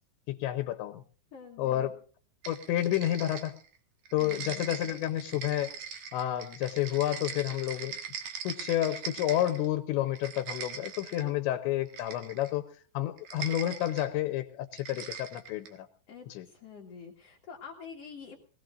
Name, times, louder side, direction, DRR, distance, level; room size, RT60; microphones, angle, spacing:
voice 1, 0.3-1.0 1.6-1.9 2.5-3.6 4.1-5.7 6.1-8.0 8.4-15.9 16.3-16.5, left 13 dB, 80° left, 7 dB, 3.1 m, -30 dB
voice 2, 1.3-1.9 4.2-4.9 11.2-11.3 16.1-18.4, left 6 dB, 50° left, -3 dB, 1.9 m, -47 dB
sound 1, 2.4-3.7 4.1-9.7 10.0-11.3 11.9-12.6 13.2-14.1 14.7-15.8, right 7 dB, 55° right, 2.8 m, -41 dB
24.0 x 18.0 x 2.6 m, 0.42 s
omnidirectional pair, 5.4 m